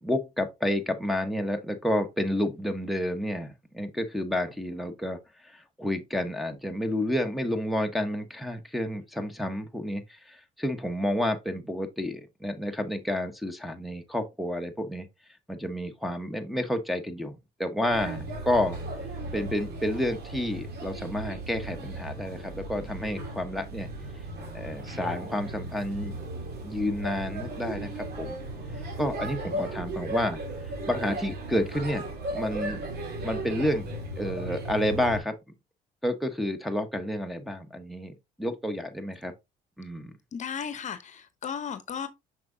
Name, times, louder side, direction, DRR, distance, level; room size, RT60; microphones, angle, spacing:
voice 1, 0.0-15.1 15.5-18.8 19.3-23.9 24.5-26.2 26.6-28.4 29.0-30.4 30.9-32.8 33.2-33.9 34.2-35.4 36.0-39.3 39.8-40.1, left 1 dB, ahead, 1.2 m, -30 dB
Male speech man speaking / Child speech kid speaking / Chatter, 17.9-35.2, right 1 dB, 75° right, 3.1 m, -36 dB
voice 2, 40.3-42.1, left 7 dB, 45° left, 0.9 m, -35 dB
6.2 x 6.0 x 2.7 m
cardioid pair, 110°, 17 cm